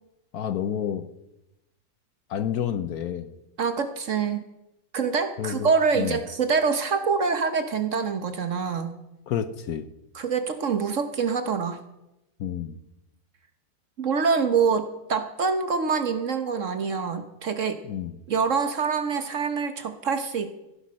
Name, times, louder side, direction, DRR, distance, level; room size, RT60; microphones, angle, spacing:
voice 1, 0.3-1.1 2.3-3.3 5.4-5.7 5.9-6.2 9.3-9.9 12.4-12.8 17.8-18.1, left 9 dB, 65° left, 12 dB, 1.1 m, -29 dB
voice 2, 3.6-4.4 4.9-8.9 10.1-11.8 14.0-17.8 18.3-20.5, right 5 dB, 50° right, 8 dB, 1.2 m, -25 dB
15.5 x 10.0 x 6.3 m, 0.92 s
omnidirectional pair, 2.0 m